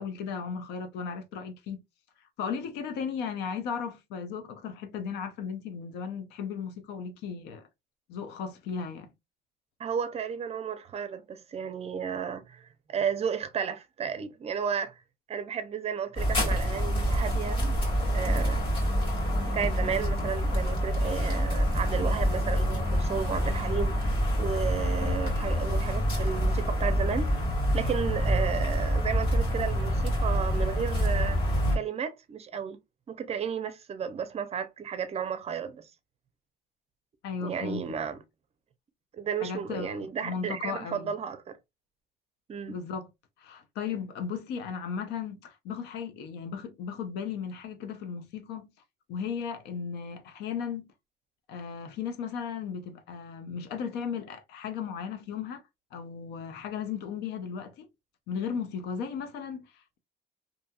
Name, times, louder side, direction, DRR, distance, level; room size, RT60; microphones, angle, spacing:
voice 1, 0.0-1.8 2.4-7.6 8.1-9.1 37.2-37.9 39.4-41.2 42.7-43.1 43.4-48.7 49.1-50.9 51.5-55.6 55.9-57.9 58.3-60.0, left 6 dB, 85° left, 0.6 m, -36 dB
voice 2, 9.8-14.9 15.3-17.7 18.1-18.6 19.5-24.1 24.4-27.3 27.7-31.4 31.7-32.8 33.1-35.9 37.4-38.2 39.2-41.6 42.5-42.8, right 7 dB, 40° right, 0.5 m, -33 dB
sound 1, 16.2-31.8, equal, 30° left, 1.6 m, -27 dB
2.7 x 2.7 x 2.2 m
cardioid pair, 110°, 17 cm